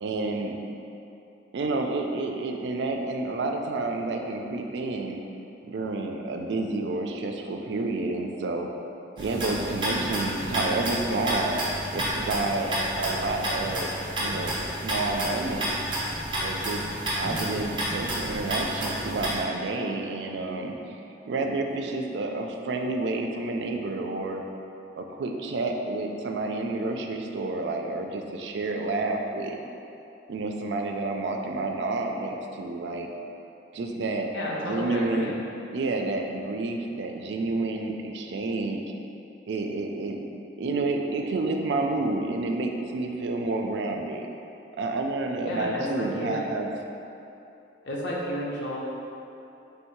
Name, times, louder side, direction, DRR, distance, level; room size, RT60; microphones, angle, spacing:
voice 1, 0.0-0.6 1.5-5.2 5.7-8.7 9.2-11.6 11.9-13.9 14.2-14.6 14.8-15.7 16.4-20.7 21.3-24.4 25.0-29.6 30.3-33.1 33.7-34.3 34.6-35.4 35.7-38.8 39.5-40.2 40.6-44.3 44.8-46.7, right 2 dB, 80° right, 3 dB, 0.4 m, -29 dB
sound 1, 9.2-19.4, right 1 dB, 25° right, 0.7 m, -30 dB
voice 2, 34.3-35.3 45.4-46.4 47.9-48.8, equal, 80° left, -4 dB, 0.7 m, -31 dB
3.5 x 2.7 x 4.4 m, 2.9 s
head